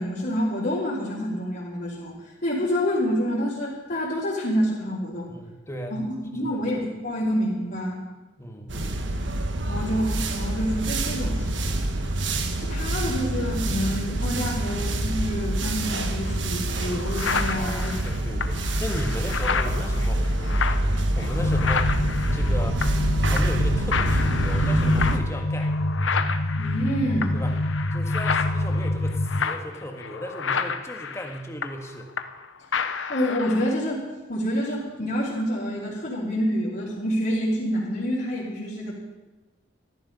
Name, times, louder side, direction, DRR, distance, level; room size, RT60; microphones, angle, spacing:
voice 1, 0.0-2.2 2.4-5.3 5.9-8.0 9.7-11.8 12.6-17.9 26.6-27.4 33.1-38.9, equal, 50° left, -9 dB, 3.6 m, -27 dB
voice 2, 5.3-5.9 6.4-6.6 8.4-9.0 17.6-25.7 27.3-27.6 27.9-32.1, equal, 15° left, 3 dB, 1.7 m, -36 dB
sound 1, 8.7-25.2, right 1 dB, 70° right, 1.3 m, -26 dB
sound 2, 16.3-16.4 16.8-23.1 23.4-23.6 23.9-32.4 32.7-33.7, left 6 dB, 85° left, 0.9 m, -31 dB
sound 3, 21.4-29.4, left 1 dB, 35° left, 0.8 m, -26 dB
14.5 x 13.0 x 5.5 m, 1.2 s
head